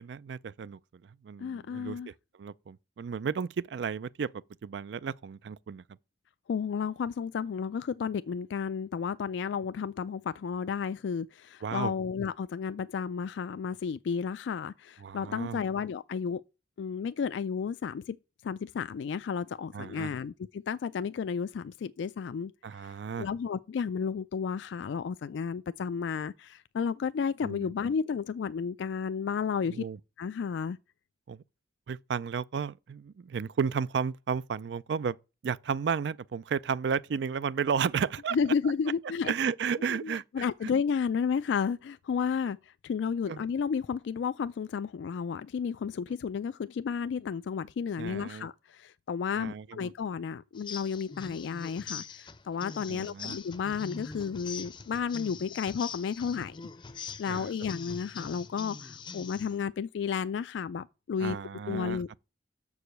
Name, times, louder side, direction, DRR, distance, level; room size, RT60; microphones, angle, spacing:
voice 1, 0.0-2.1 2.4-5.8 11.6-11.9 15.0-15.6 19.7-20.1 22.6-23.3 27.4-27.7 29.7-30.0 31.3-31.4 31.9-35.2 35.4-38.4 39.2-40.5 43.3-43.4 48.0-48.5 49.4-49.9 52.9-53.4 57.3-57.5 61.2-62.0, right 6 dB, 70° right, 0.4 m, -33 dB
voice 2, 1.4-2.1 6.5-16.4 16.8-18.2 18.4-22.5 22.8-29.8 30.2-30.8 38.3-39.3 40.0-56.6 57.2-61.4 61.7-62.2, left 6 dB, 80° left, 0.3 m, -32 dB
sound 1, 50.5-59.6, left 5 dB, 25° left, 0.5 m, -43 dB
6.9 x 4.8 x 6.5 m
head